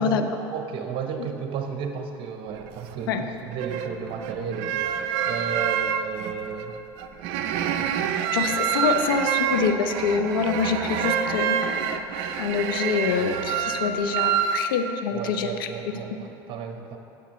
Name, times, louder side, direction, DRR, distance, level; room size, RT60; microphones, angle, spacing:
voice 1, 0.0-6.8 15.1-17.0, right 6 dB, 50° right, 5 dB, 0.9 m, -33 dB
sound 1, 2.5-3.0 3.5-14.6, right 8 dB, 65° right, 0.5 m, -27 dB
voice 2, 8.3-11.6 12.4-15.7, left 6 dB, 85° left, 8 dB, 0.5 m, -25 dB
11.5 x 7.1 x 3.1 m, 2.9 s
hypercardioid pair, 90°, 11 cm